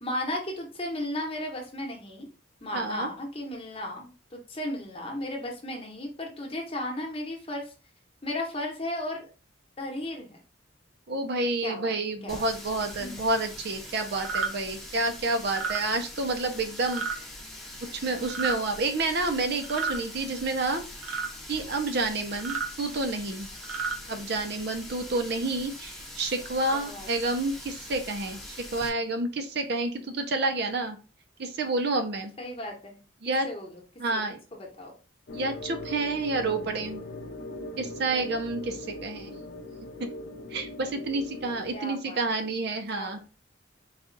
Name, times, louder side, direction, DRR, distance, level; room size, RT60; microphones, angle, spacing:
voice 1, 0.0-2.3 2.6-7.7 8.2-9.3 9.8-10.4 11.6-11.9 12.2-12.5 13.0-13.1 18.1-18.3 26.7-27.3 32.4-33.0 33.4-33.8 34.1-34.2 34.5-34.9 41.7-42.3 42.9-43.2, left 1 dB, 30° left, 1 dB, 0.9 m, -35 dB
voice 2, 2.7-3.1 11.1-17.2 18.0-20.8 21.1-21.2 21.5-23.5 24.1-31.0 31.4-32.3 33.2-33.5 34.0-34.4 35.3-37.0 37.8-39.3 40.0-40.1 40.5-43.2, right 2 dB, 55° right, 6 dB, 0.6 m, -29 dB
Water tap faucet, 12.3-28.9, left 1 dB, ahead, 0.7 m, -43 dB
sound 1, 14.2-14.5 15.4-15.8 16.9-17.2 18.2-18.6 19.6-20.0 21.0-21.3 22.3-22.7 23.5-24.0, right 5 dB, 85° right, 1.0 m, -31 dB
sound 2, 35.3-41.7, left 2 dB, 55° left, 0.6 m, -40 dB
4.1 x 2.3 x 3.8 m, 0.35 s
head